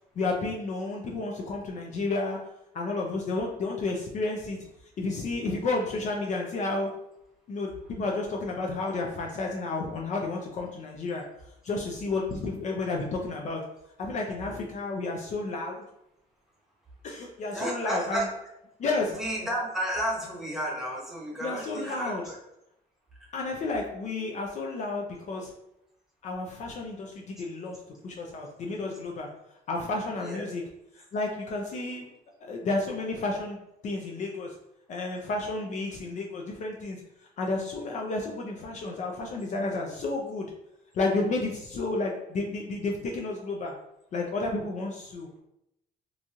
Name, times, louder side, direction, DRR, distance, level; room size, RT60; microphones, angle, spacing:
voice 1, 0.2-2.4 2.7-4.6 5.0-6.9 7.5-11.2 11.6-13.6 14.0-15.8 17.0-18.3 18.8-19.1 21.4-22.2 23.3-25.5 26.2-27.8 28.0-29.3 29.7-30.6 30.9-32.1 32.4-34.5 34.9-37.0 37.4-40.5 40.9-43.7 44.1-45.4, left 3 dB, 45° left, 0 dB, 0.4 m, -31 dB
voice 2, 17.5-18.3 19.1-22.4 30.2-30.6, right 1 dB, ahead, -4 dB, 0.8 m, -32 dB
2.9 x 2.6 x 2.3 m, 0.82 s
cardioid pair, 110°, 17 cm